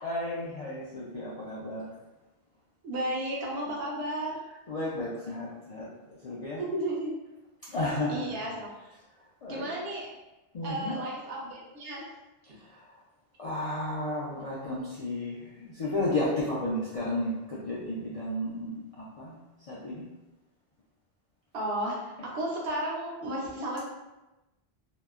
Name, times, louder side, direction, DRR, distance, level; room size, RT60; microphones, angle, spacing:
voice 1, 0.0-1.9 4.7-6.6 7.7-8.3 9.4-9.6 10.5-11.0 12.7-12.8 13.4-19.4 19.7-20.0, left 1 dB, 55° left, -7 dB, 0.4 m, -33 dB
voice 2, 2.8-4.4 6.6-7.1 8.1-8.7 9.5-10.1 10.6-12.1 21.5-23.8, right 1 dB, 70° right, -4 dB, 0.9 m, -33 dB
2.8 x 2.0 x 2.3 m, 1.0 s
omnidirectional pair, 1.0 m